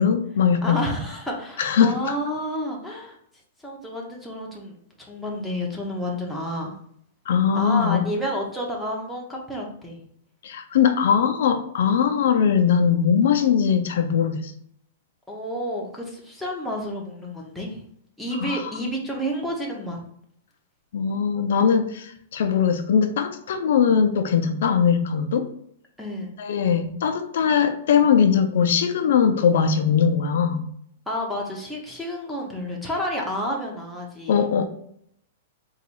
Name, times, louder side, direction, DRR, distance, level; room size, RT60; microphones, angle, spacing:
voice 1, 0.0-0.9 1.6-2.0 7.3-8.1 10.4-14.5 18.4-18.7 20.9-25.5 26.4-30.6 34.3-34.7, left 7 dB, 65° left, 7 dB, 0.4 m, -20 dB
voice 2, 0.6-3.2 3.6-4.7 5.1-6.8 7.5-10.0 15.3-17.8 18.2-20.0 26.0-26.3 31.1-34.4, equal, ahead, -4 dB, 0.6 m, -30 dB
3.9 x 2.3 x 4.5 m, 0.67 s
supercardioid pair, 170°, 0 cm